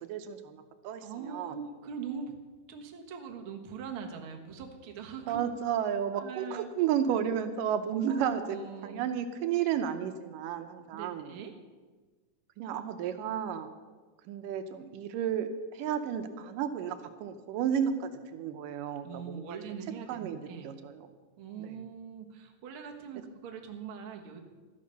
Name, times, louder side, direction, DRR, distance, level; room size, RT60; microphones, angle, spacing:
voice 1, 0.0-1.6 5.3-11.3 12.6-13.7 14.3-19.6 20.1-21.1 21.6-21.8, right 8 dB, 80° right, 8 dB, 2.4 m, -32 dB
voice 2, 1.0-2.3 2.7-5.4 6.1-6.7 8.1-9.1 10.9-11.5 19.0-20.7 21.4-24.4, right 6 dB, 55° right, 3 dB, 1.7 m, -42 dB
13.0 x 10.5 x 6.8 m, 1.3 s
omnidirectional pair, 3.8 m